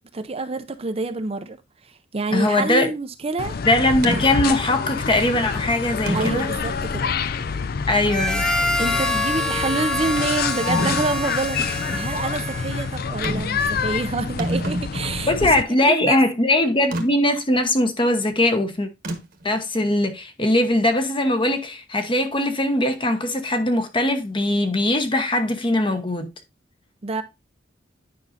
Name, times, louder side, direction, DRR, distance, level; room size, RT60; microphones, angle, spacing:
voice 1, 0.1-1.6 1.8-3.5 6.1-7.1 8.8-15.5 15.9-16.2 27.0-27.2, right 3 dB, 35° right, 0.6 m, -27 dB
voice 2, 2.3-2.9 3.6-6.5 7.9-8.4 15.3-18.9 19.4-26.3, left 1 dB, 30° left, 1.0 m, -21 dB
sound 1, 3.4-15.6, left 5 dB, 55° left, 0.4 m, -27 dB
sound 2, 4.0-4.3 5.2-5.3 6.1-6.6 7.2-7.3 10.7-11.1 13.2-13.6 13.9-14.0 14.2-15.3 16.9-17.1 19.0-19.4, right 1 dB, 55° right, 1.3 m, -28 dB
Harmonica, 8.1-13.1, left 2 dB, 5° left, 0.7 m, -26 dB
9.7 x 5.4 x 2.6 m
head